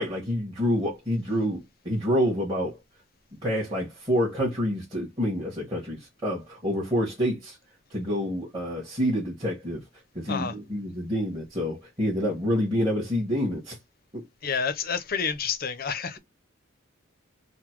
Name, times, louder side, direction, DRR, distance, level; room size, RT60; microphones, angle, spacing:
voice 1, 0.0-2.8 3.4-7.6 7.9-9.8 10.1-13.8 14.1-14.2, equal, 20° right, 1.4 m, -27 dB
voice 2, 14.4-16.2, left 6 dB, 45° left, 0.6 m, -29 dB
3.9 x 2.2 x 4.5 m
head